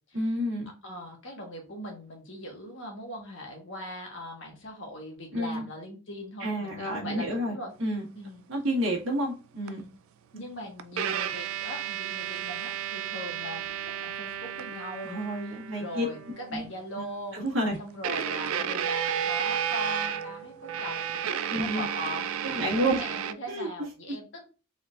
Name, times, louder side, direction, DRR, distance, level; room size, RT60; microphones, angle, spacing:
voice 1, 0.1-0.7 5.3-5.6 6.4-7.5 7.8-8.1 8.5-9.8 15.0-16.0 16.5-16.6 17.3-17.8 18.1-18.2 21.5-21.9 22.4-23.0 23.5-23.7, right 1 dB, 65° right, -2 dB, 1.7 m, -29 dB
voice 2, 0.8-7.7 8.1-8.4 9.6-9.9 10.3-17.4 17.8-24.4, equal, 60° left, 2 dB, 1.4 m, -40 dB
sound 1, 9.7-9.8 10.8-16.7 18.0-23.3, right 9 dB, 80° right, 0.4 m, -32 dB
4.2 x 3.9 x 2.5 m, 0.32 s
head